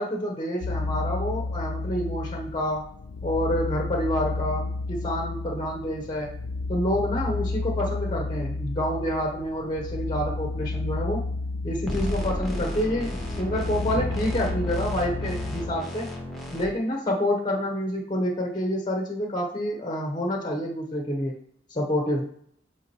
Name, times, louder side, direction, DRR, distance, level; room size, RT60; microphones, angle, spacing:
voice 1, 0.0-2.9 3.2-6.4 6.7-11.2 11.6-16.1 16.5-21.4 21.7-22.3, equal, 25° left, 1 dB, 1.0 m, -28 dB
sound 1, 0.6-15.8, left 3 dB, 80° left, 0.4 m, -32 dB
sound 2, 11.8-16.6, left 1 dB, ahead, 1.3 m, -33 dB
8.1 x 3.8 x 3.0 m, 0.67 s
head